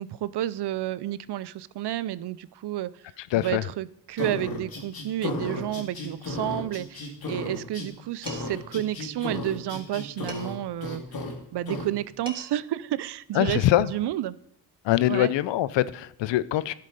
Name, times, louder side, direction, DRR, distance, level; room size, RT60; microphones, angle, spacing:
voice 1, 0.0-2.9 3.3-11.0 11.5-14.4 15.1-15.3, right 13 dB, 70° right, 0.5 m, -31 dB
voice 2, 3.2-3.6 13.3-13.9 14.8-16.7, left 14 dB, 85° left, 0.5 m, -23 dB
sound 1, 4.2-7.9 8.2-10.5 10.8-11.3 11.7-11.9, left 2 dB, 55° left, 2.3 m, -34 dB
Dishes pots and pans, 8.3-8.7 10.3-10.8 11.9-12.0 12.3-12.7, right 1 dB, 10° right, 3.1 m, -42 dB
11.5 x 6.7 x 5.2 m
cardioid pair, 60°, 42 cm